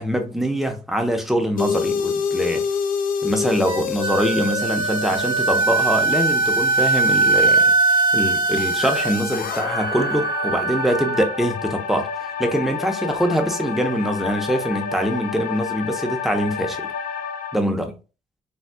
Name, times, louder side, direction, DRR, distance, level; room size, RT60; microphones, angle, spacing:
voice 1, 0.0-2.7 3.2-16.9 17.5-17.9, equal, ahead, 0.8 m, -23 dB
sound 1, 1.6-17.6, left 6 dB, 75° left, 0.4 m, -28 dB
Wind instrument woodwind instrument, 3.7-11.4, right 3 dB, 30° right, 0.5 m, -21 dB
4.0 x 2.4 x 2.2 m
cardioid pair, 60°, 15 cm